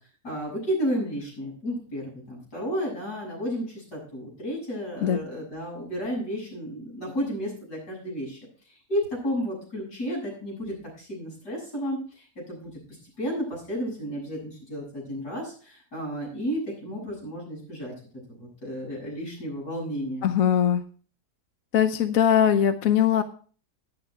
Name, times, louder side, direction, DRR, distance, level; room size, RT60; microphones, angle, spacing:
voice 1, 0.2-8.4 8.7-12.7 13.2-17.9 18.3-20.3, equal, 85° left, -3 dB, 7.8 m, -32 dB
voice 2, 20.2-20.8 21.7-23.2, left 9 dB, 65° left, 10 dB, 1.1 m, -21 dB
11.0 x 10.5 x 4.5 m, 0.42 s
omnidirectional pair, 1.7 m